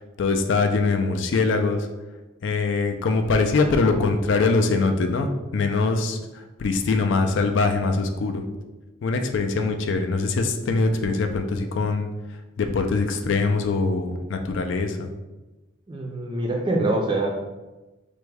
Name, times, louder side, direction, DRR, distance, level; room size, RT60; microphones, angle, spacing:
voice 1, 0.2-1.9 2.4-8.4 9.0-12.1 12.6-15.1, left 3 dB, 65° left, 6 dB, 0.3 m, -23 dB
voice 2, 15.9-17.3, right 2 dB, 25° right, 0 dB, 0.4 m, -24 dB
3.4 x 2.1 x 3.3 m, 1.1 s
head